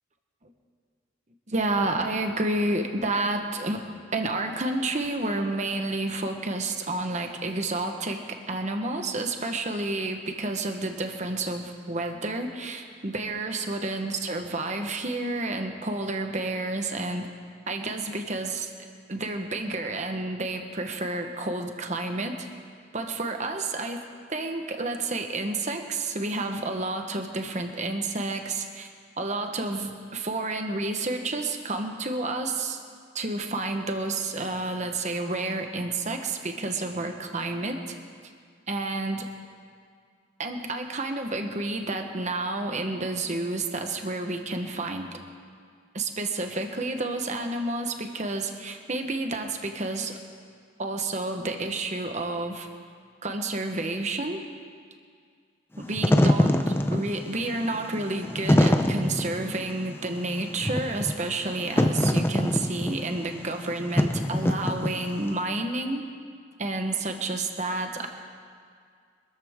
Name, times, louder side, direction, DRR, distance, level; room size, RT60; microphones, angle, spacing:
voice 1, 1.5-3.8 4.1-17.3 17.7-18.7 19.1-22.5 22.9-24.0 24.3-28.9 29.2-32.8 33.1-37.9 38.7-39.3 40.4-45.2 45.9-50.2 50.8-52.7 53.2-54.5 55.8-66.1 66.6-68.1, right 2 dB, 40° right, 5 dB, 1.1 m, -30 dB
Wind / Fire, 55.8-65.3, left 1 dB, 10° left, 0.6 m, -24 dB
25.0 x 13.5 x 3.6 m, 2.1 s
head